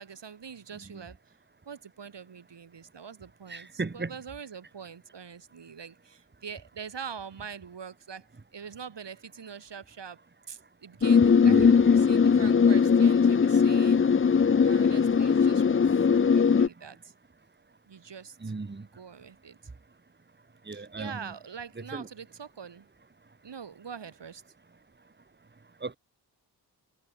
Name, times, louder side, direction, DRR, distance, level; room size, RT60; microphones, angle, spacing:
voice 1, 0.0-1.3 1.6-10.2 10.5-14.0 14.6-17.1 17.9-18.5 18.9-19.6 20.7-22.9 23.4-24.4, right 6 dB, 80° right, 4.5 m, -44 dB
voice 2, 3.5-4.1 11.4-12.4 18.4-18.9 20.7-21.1 21.9-22.1 25.8-25.9, right 3 dB, 25° right, 1.7 m, -36 dB
sound 1, 11.0-16.7, left 6 dB, 30° left, 0.6 m, -20 dB
wide cardioid pair, 100°, 42 cm